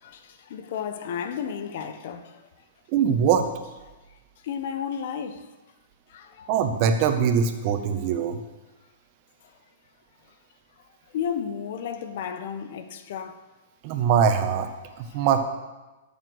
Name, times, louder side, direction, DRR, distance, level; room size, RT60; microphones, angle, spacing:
voice 1, 0.0-2.4 4.4-5.5 6.1-6.5 11.1-13.4 15.1-15.2, left 7 dB, 60° left, 1.2 m, -33 dB
voice 2, 2.9-3.5 6.5-8.4 13.8-14.7 15.0-15.4, right 7 dB, 45° right, 1.5 m, -22 dB
13.5 x 7.3 x 6.4 m
hypercardioid pair, 125°, 0 cm